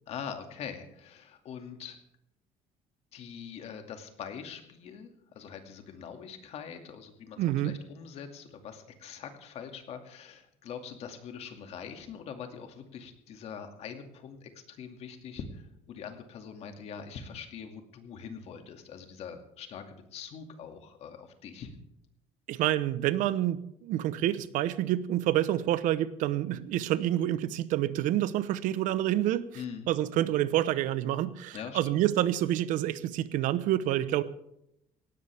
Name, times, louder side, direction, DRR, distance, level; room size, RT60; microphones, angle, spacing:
voice 1, 0.1-2.0 3.1-21.7 29.5-29.9 31.5-32.0, left 7 dB, 50° left, 5 dB, 2.4 m, -43 dB
voice 2, 7.4-7.7 22.5-29.4 29.9-34.2, right 13 dB, 70° right, 15 dB, 1.0 m, -28 dB
18.5 x 17.0 x 3.5 m, 0.79 s
cardioid pair, 175°, 14 cm